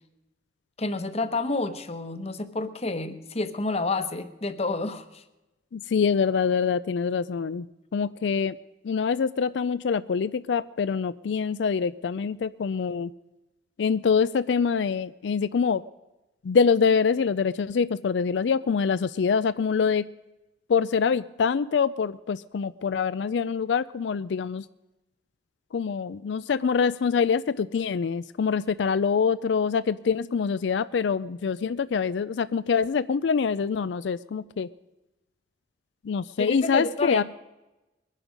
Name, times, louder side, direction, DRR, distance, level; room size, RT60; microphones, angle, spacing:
voice 1, 0.8-5.2 36.4-37.2, left 3 dB, 35° left, 11 dB, 1.0 m, -29 dB
voice 2, 5.7-7.7 7.9-8.6 8.8-13.1 13.8-15.8 16.4-20.1 20.7-24.6 25.7-34.7 36.0-37.2, left 6 dB, 85° left, 16 dB, 0.4 m, -25 dB
22.0 x 10.5 x 5.2 m, 1.0 s
head